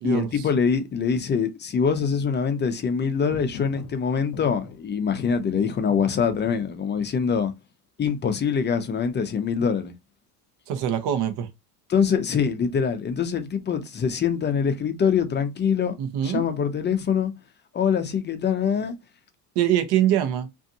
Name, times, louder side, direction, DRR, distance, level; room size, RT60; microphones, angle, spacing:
voice 1, 0.0-7.5 8.0-9.9 11.9-15.9 16.2-17.3 17.7-19.0, left 6 dB, 25° left, 0.6 m, -24 dB
sound 1, 3.3-4.0 4.3-7.1, left 6 dB, 55° left, 0.8 m, -41 dB
voice 2, 10.7-11.5 16.0-16.4 19.5-20.5, right 10 dB, 55° right, 0.9 m, -23 dB
2.7 x 2.4 x 2.7 m
hypercardioid pair, 80°, 48 cm